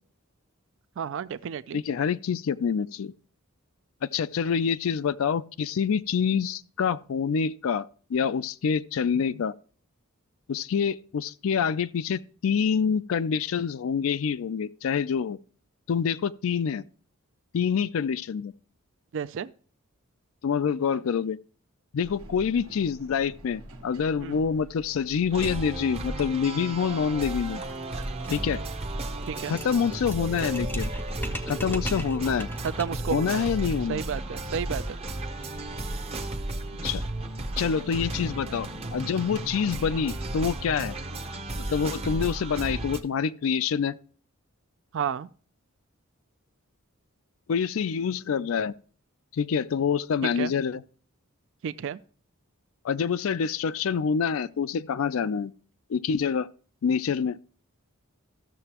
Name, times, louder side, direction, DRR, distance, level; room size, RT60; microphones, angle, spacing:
voice 1, 1.0-1.8 19.1-19.5 24.2-24.3 29.3-29.6 32.8-33.5 33.9-35.0 44.9-45.3 50.4-50.5 51.6-52.0, right 7 dB, 60° right, 0.4 m, -31 dB
voice 2, 1.7-3.1 4.0-9.5 10.5-15.4 15.9-16.8 17.5-18.5 20.4-21.4 21.9-27.6 28.3-28.6 29.5-30.9 31.5-32.5 33.1-34.0 36.8-37.0 37.6-40.9 41.7-44.0 47.5-48.7 49.3-50.8 52.8-55.5 55.9-56.5 56.8-57.4, left 6 dB, 65° left, 0.4 m, -26 dB
sound 1, 22.0-40.4, equal, 80° right, 1.4 m, -47 dB
sound 2, 25.3-43.0, right 2 dB, 30° right, 0.7 m, -34 dB
sound 3, 27.4-33.1, equal, 10° left, 0.6 m, -39 dB
14.0 x 6.7 x 2.9 m
head